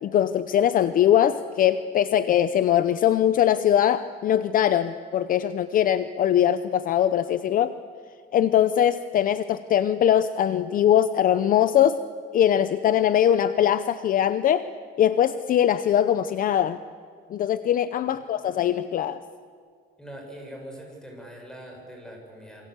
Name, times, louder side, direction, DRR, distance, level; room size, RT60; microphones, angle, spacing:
voice 1, 0.0-7.7 8.3-12.0 12.3-14.7 15.0-16.8 17.3-19.2, left 10 dB, 45° left, 13 dB, 0.6 m, -21 dB
voice 2, 20.0-22.7, equal, 5° left, 1 dB, 6.6 m, -42 dB
27.5 x 24.5 x 8.2 m, 2.1 s
cardioid pair, 155°, 20 cm